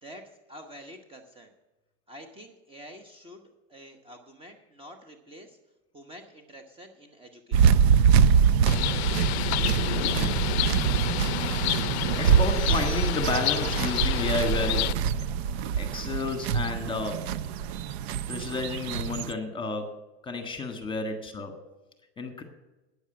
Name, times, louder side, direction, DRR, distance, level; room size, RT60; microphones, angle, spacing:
voice 1, 0.0-1.5 2.1-5.6 5.9-7.8, equal, 15° right, 5 dB, 1.1 m, -48 dB
sound 1, 7.5-19.3, right 7 dB, 70° right, 0.6 m, -24 dB
Bird, 8.7-14.9, left 17 dB, 75° left, 0.5 m, -30 dB
voice 2, 12.2-14.9 15.8-17.3 18.3-19.9 20.2-21.5 22.2-22.4, left 3 dB, 15° left, 6 dB, 1.5 m, -31 dB
9.5 x 7.2 x 8.7 m, 1.1 s
supercardioid pair, 130°, 33 cm